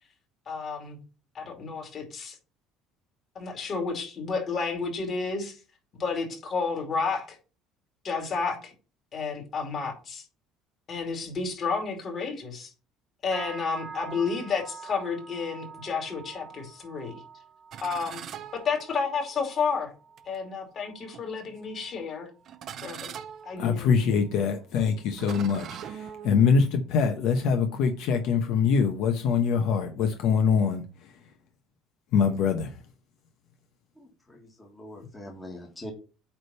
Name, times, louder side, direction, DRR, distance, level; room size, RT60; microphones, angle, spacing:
voice 1, 0.5-1.0 1.3-2.3 3.3-5.6 6.0-7.4 8.0-8.7 9.1-10.2 10.9-12.7 13.2-17.2 17.8-18.2 18.5-19.9 20.3-22.3 22.8-23.1 23.4-23.9, left 5 dB, 30° left, 2.7 m, -31 dB
sound 1, 13.3-22.9 23.2-23.6 24.0-24.3 24.9-25.0, right 5 dB, 20° right, 1.4 m, -47 dB
sound 2, 17.7-19.4 20.2-20.4 21.1-21.7 22.5-26.6, right 9 dB, 40° right, 0.6 m, -42 dB
voice 2, 23.6-31.1 32.1-32.8, left 6 dB, 60° left, 1.0 m, -24 dB
voice 3, 34.0-35.9, left 1 dB, 10° left, 1.6 m, -43 dB
8.8 x 3.4 x 5.5 m
cardioid pair, 165°, 0 cm